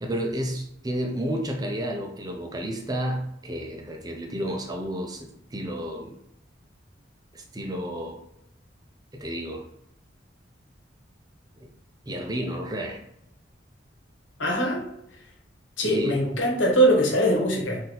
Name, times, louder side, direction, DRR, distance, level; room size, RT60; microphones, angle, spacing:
voice 1, 0.0-6.1 7.3-8.2 9.1-9.6 11.6-11.7 12.1-13.0 15.8-16.2, equal, 20° right, 2 dB, 0.5 m, -31 dB
voice 2, 14.4-14.8 15.8-17.8, right 1 dB, 90° left, 0 dB, 1.2 m, -22 dB
4.1 x 2.7 x 3.9 m, 0.79 s
head